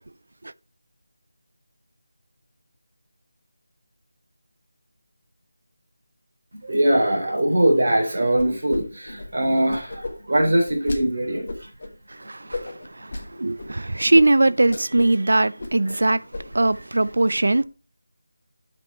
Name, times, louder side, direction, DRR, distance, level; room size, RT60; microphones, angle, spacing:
voice 1, 6.5-11.7 12.4-12.5 13.3-13.5 13.9-14.0 15.9-16.0, right 1 dB, 45° right, 3.4 m, -22 dB
sound 1, 8.4-8.8 9.1-11.0 11.5-11.9 12.5-13.2 13.6-13.7 14.1-14.2 14.6-15.2 15.4-16.0 16.3-16.7, left 2 dB, 30° left, 1.5 m, -33 dB
voice 2, 12.1-16.2 16.5-17.6, right 2 dB, 65° right, 0.5 m, -20 dB
7.3 x 5.3 x 5.4 m
figure-of-eight pair, 180°, 0 cm